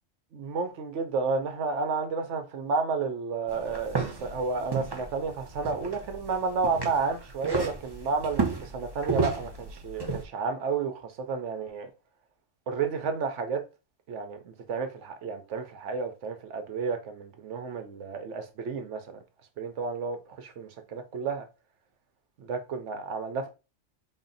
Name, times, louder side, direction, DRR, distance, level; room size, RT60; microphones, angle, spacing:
voice 1, 0.3-11.9 12.7-13.6 14.1-19.2 19.6-21.5 22.4-23.5, right 4 dB, 75° right, 1.0 m, -31 dB
sound 1, 3.5-10.2, right 4 dB, 30° right, 0.5 m, -33 dB
4.1 x 2.1 x 3.9 m
omnidirectional pair, 1.3 m